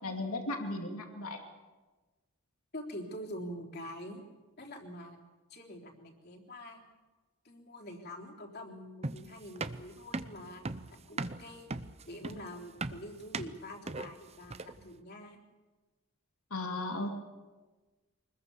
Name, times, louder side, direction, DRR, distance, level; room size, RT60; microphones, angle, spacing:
voice 1, 0.0-1.4 16.5-17.2, left 2 dB, 85° left, 4 dB, 2.6 m, -36 dB
voice 2, 2.7-4.2 4.6-5.2 5.5-6.8 7.4-11.7 12.1-15.4, equal, 45° left, 0 dB, 3.6 m, -45 dB
sound 1, 9.0-14.9, right 3 dB, 30° right, 0.7 m, -39 dB
24.5 x 20.5 x 7.0 m, 1.2 s
head